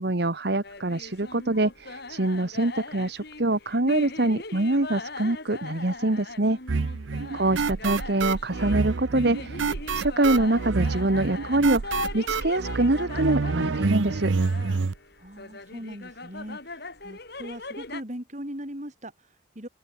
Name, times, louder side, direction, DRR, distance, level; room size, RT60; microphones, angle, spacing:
voice 1, 0.0-6.6 7.3-9.7 9.9-14.3, right 2 dB, 60° right, 1.4 m, -25 dB
sound 1, 0.6-18.0, left 3 dB, 55° left, 5.9 m, -40 dB
sound 2, 6.7-14.9, right 4 dB, 80° right, 0.6 m, -28 dB
voice 2, 7.3-7.6 15.2-19.7, equal, 40° right, 5.4 m, -40 dB
open air
head